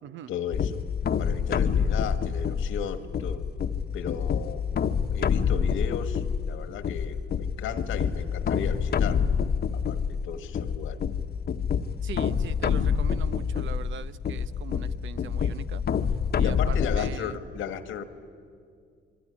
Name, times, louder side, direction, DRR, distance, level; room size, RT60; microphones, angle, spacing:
voice 1, 0.3-0.8 1.2-3.5 3.9-4.6 5.1-9.3 9.7-11.0 16.4-18.0, left 8 dB, 85° left, 10 dB, 1.7 m, -35 dB
sound 1, 0.5-17.2, left 7 dB, 55° left, 1.1 m, -27 dB
voice 2, 12.0-15.8 16.3-17.4, right 8 dB, 75° right, 14 dB, 0.8 m, -41 dB
27.0 x 22.5 x 9.9 m, 2.2 s
cardioid pair, 90°, 20 cm